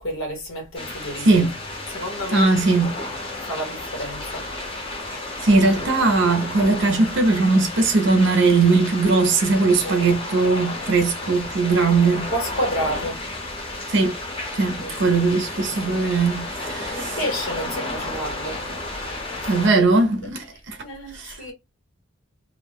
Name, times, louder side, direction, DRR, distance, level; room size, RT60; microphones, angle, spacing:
voice 1, 0.0-1.3 1.9-2.5 3.4-4.5 5.5-5.6 9.4-10.1 12.2-13.2 14.8-15.2 16.9-18.6 19.7-20.1 20.8-21.5, equal, 75° left, 1.0 m, -30 dB
sound 1, 0.7-19.7, left 2 dB, 25° left, 0.7 m, -32 dB
voice 2, 1.2-1.5 2.3-3.0 5.4-12.3 13.9-14.2 14.5-17.2 19.5-20.8 21.1-21.5, right 3 dB, 55° right, 0.5 m, -19 dB
2.5 x 2.0 x 3.3 m
head